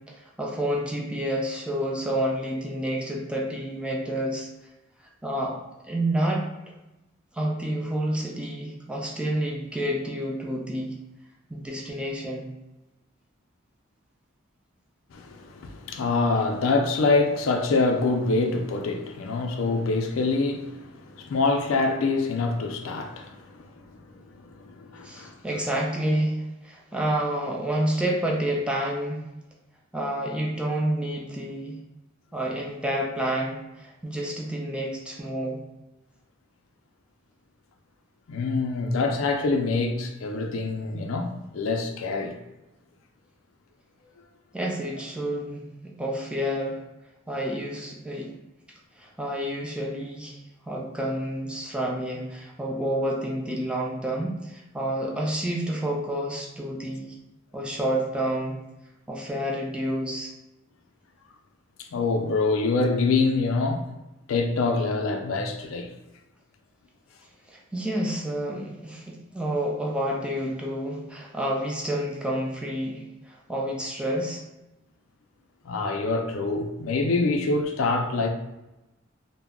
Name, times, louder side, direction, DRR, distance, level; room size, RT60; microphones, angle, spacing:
voice 1, 0.0-4.5 5.2-5.6 5.8-6.5 7.3-10.9 11.5-12.5 25.0-29.3 29.9-31.8 32.3-35.6 44.5-46.8 47.3-48.3 49.0-57.2 57.5-58.6 59.1-60.3 67.5-74.4, right 1 dB, 5° right, 0.3 m, -29 dB
voice 2, 15.1-25.3 38.3-42.4 61.9-63.9 64.3-65.9 75.6-78.3, left 3 dB, 85° left, 0.4 m, -25 dB
2.2 x 2.0 x 3.5 m
head